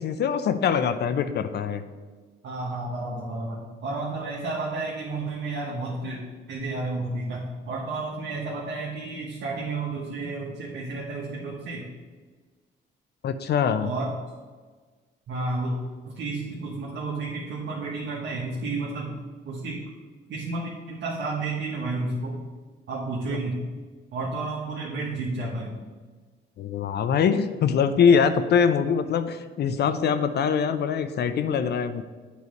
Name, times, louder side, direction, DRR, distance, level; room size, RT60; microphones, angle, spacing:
voice 1, 0.0-1.8 13.2-13.9 26.6-32.0, left 7 dB, 55° left, 11 dB, 0.5 m, -23 dB
voice 2, 2.4-6.2 6.5-11.9 13.8-14.1 15.3-15.7 16.0-19.2 19.4-19.8 20.3-22.4 22.9-23.6 24.1-25.8, right 3 dB, 65° right, -3 dB, 1.2 m, -31 dB
8.2 x 3.2 x 5.1 m, 1.4 s
cardioid pair, 90°, 20 cm